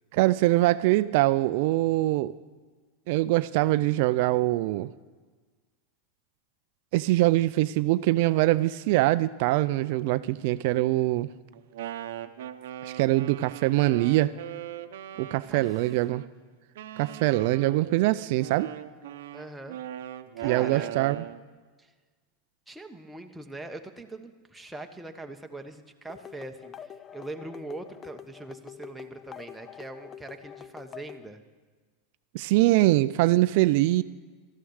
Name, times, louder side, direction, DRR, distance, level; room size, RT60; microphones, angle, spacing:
voice 1, 0.1-2.3 3.1-4.9 6.9-11.3 12.8-14.3 15.2-16.2 17.0-18.7 20.4-21.2 32.3-34.0, right 17 dB, 65° right, 14 dB, 0.4 m, -23 dB
Wind instrument woodwind instrument, 11.5-16.3 16.8-21.5, right 12 dB, 80° right, 0.7 m, -40 dB
voice 2, 15.4-15.8 19.3-19.8 20.4-21.0 21.8-21.9 22.7-31.4, right 2 dB, 5° right, 4 dB, 1.1 m, -42 dB
sound 1, 26.1-31.3, left 8 dB, 30° left, 0.6 m, -46 dB
13.0 x 11.5 x 6.4 m, 1.4 s
supercardioid pair, 120°, 0 cm